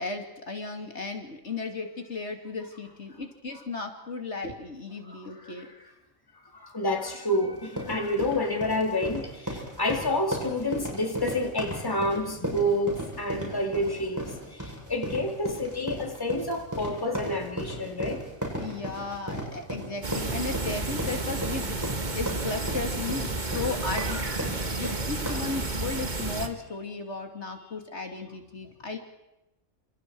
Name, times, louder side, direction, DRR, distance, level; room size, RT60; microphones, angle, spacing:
voice 1, 0.0-5.7 18.6-29.0, left 3 dB, 60° left, 2.8 m, -35 dB
voice 2, 5.0-5.7 6.5-18.2, left 1 dB, 15° left, 2.5 m, -29 dB
sound 1, 7.5-25.6, equal, 15° right, 7.7 m, -35 dB
sound 2, 20.0-26.5, right 3 dB, 35° right, 1.8 m, -31 dB
29.0 x 27.5 x 4.7 m
omnidirectional pair, 1.3 m